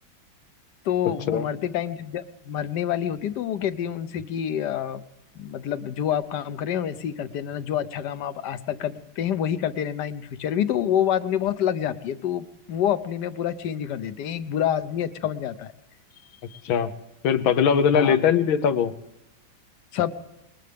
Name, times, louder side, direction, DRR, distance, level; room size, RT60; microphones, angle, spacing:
voice 1, 0.8-5.0 5.3-15.7 16.5-16.6 17.9-18.2 19.9-20.1, left 10 dB, 65° left, 13 dB, 1.3 m, -27 dB
voice 2, 17.2-18.9, left 7 dB, 85° left, 12 dB, 1.7 m, -20 dB
20.5 x 19.0 x 3.4 m, 0.95 s
omnidirectional pair, 2.1 m